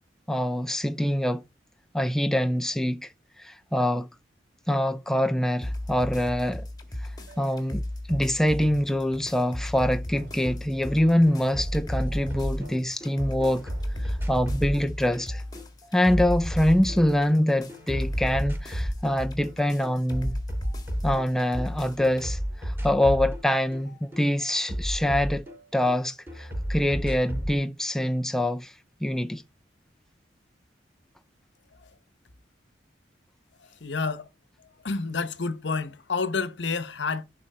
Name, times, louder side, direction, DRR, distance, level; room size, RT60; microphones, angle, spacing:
voice 1, 0.3-1.4 1.9-3.1 3.4-4.1 4.7-6.7 7.4-7.8 8.1-13.7 14.0-15.4 15.9-20.4 21.0-25.4 25.7-28.7 29.0-29.4, left 1 dB, ahead, 0.4 m, -25 dB
sound 1, 5.6-22.3, left 1 dB, 20° left, 1.6 m, -36 dB
sound 2, 6.8-14.9, equal, 65° right, 2.8 m, -49 dB
sound 3, 10.5-10.6 10.9-13.1 13.4-17.4 17.7-19.2 19.4-21.7 22.0-26.0 26.3-27.6, equal, 15° right, 4.7 m, -32 dB
voice 2, 33.8-34.3 34.6-37.2, left 4 dB, 65° left, 0.9 m, -29 dB
11.5 x 4.2 x 5.4 m
head